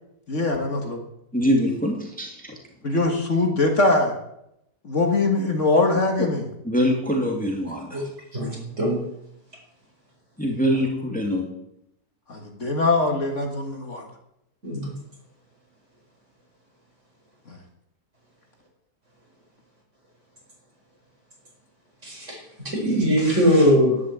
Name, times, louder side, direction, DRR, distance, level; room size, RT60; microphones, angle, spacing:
voice 1, 0.3-1.0 2.8-4.2 4.8-6.5 12.3-14.1 17.5-17.6, left 2 dB, 45° left, 3 dB, 2.1 m, -22 dB
voice 2, 1.3-2.6 6.6-8.0 10.4-11.5, equal, 5° left, 0 dB, 2.5 m, -24 dB
voice 3, 8.3-9.1 14.6-14.9 22.0-24.0, equal, 45° right, -1 dB, 5.3 m, -21 dB
12.0 x 11.0 x 8.1 m, 0.80 s
omnidirectional pair, 1.7 m